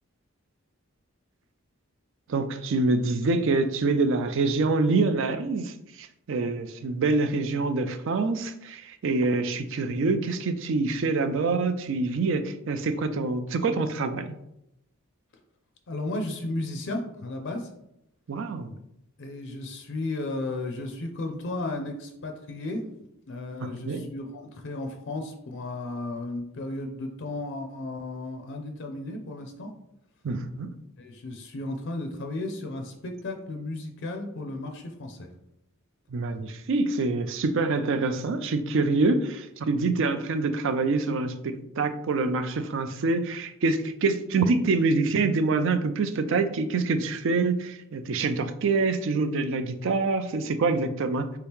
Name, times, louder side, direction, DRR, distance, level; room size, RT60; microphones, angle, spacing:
voice 1, 2.3-14.3 18.3-18.7 23.6-24.1 30.2-30.7 36.1-51.3, right 3 dB, 60° right, 9 dB, 0.4 m, -26 dB
voice 2, 15.9-17.7 19.2-22.8 23.3-29.7 31.0-35.3, left 2 dB, 55° left, 4 dB, 0.5 m, -34 dB
4.5 x 2.9 x 3.5 m, 0.82 s
head